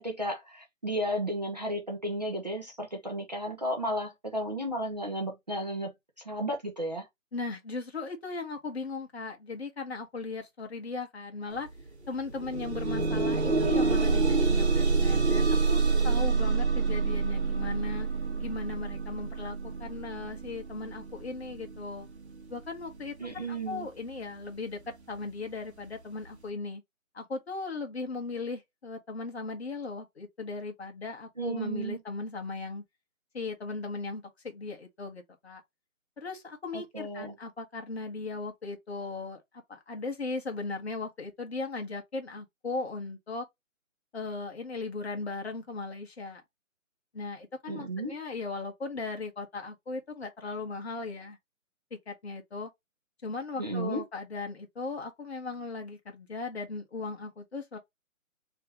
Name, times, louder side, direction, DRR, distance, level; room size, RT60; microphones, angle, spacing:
voice 1, 0.0-5.9 6.2-7.1 23.2-23.9 31.4-32.0 36.7-37.3 47.7-48.1 53.6-54.0, right 1 dB, 30° right, 0.6 m, -33 dB
voice 2, 7.3-11.7 12.1-18.1 18.4-22.1 22.5-26.8 27.1-32.8 33.3-35.6 36.2-39.4 39.7-43.5 44.1-46.4 47.1-51.4 51.9-52.7 53.2-57.8, left 3 dB, 50° left, 1.3 m, -37 dB
sound 1, 11.6-11.7 12.1-23.1 23.8-23.9 24.4-24.5, right 4 dB, 55° right, 1.2 m, -27 dB
3.2 x 3.0 x 3.5 m
hypercardioid pair, 175°, 41 cm